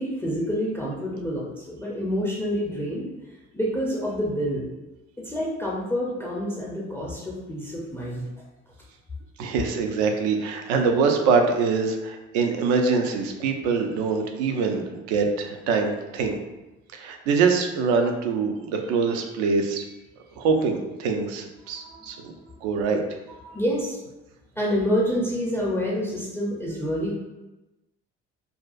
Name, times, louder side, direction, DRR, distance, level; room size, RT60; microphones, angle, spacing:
voice 1, 0.0-3.1 3.5-4.7 5.2-8.2 21.7-22.1 22.4-22.5 23.4-24.0 24.6-27.1, equal, 5° left, -5 dB, 0.4 m, -28 dB
voice 2, 9.4-16.4 16.9-19.8 20.4-22.3 22.6-23.0, right 5 dB, 60° right, 4 dB, 0.5 m, -24 dB
2.4 x 2.3 x 2.3 m, 1.0 s
figure-of-eight pair, 50°, 38 cm